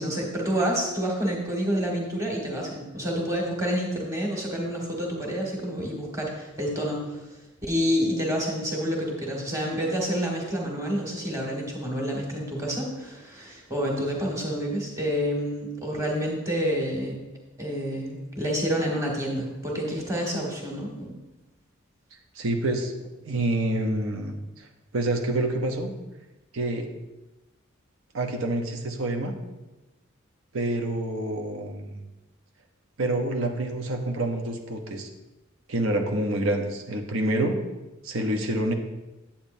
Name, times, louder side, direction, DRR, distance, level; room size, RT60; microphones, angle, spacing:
voice 1, 0.0-7.2 7.6-17.1 17.6-21.1, equal, 15° right, -2 dB, 1.7 m, -28 dB
voice 2, 22.3-24.7 24.9-25.9 26.5-26.9 28.1-29.3 30.5-31.9 33.0-35.1 35.7-37.6 38.0-38.7, right 1 dB, 85° right, 3 dB, 0.9 m, -27 dB
8.7 x 8.6 x 2.7 m, 1.1 s
head